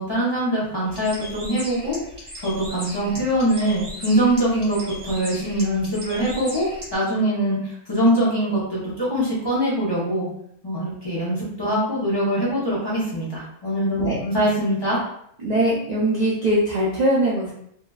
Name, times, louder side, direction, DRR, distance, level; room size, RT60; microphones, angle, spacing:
voice 1, 0.0-2.0 2.4-4.8 5.0-6.7 6.9-10.3 10.6-15.0, right 1 dB, 25° left, -8 dB, 0.6 m, -23 dB
Bird, 0.9-6.9, equal, 40° right, 0.8 m, -37 dB
voice 2, 15.4-17.5, right 1 dB, 75° right, -5 dB, 0.3 m, -21 dB
2.7 x 2.3 x 2.2 m, 0.71 s
omnidirectional pair, 1.4 m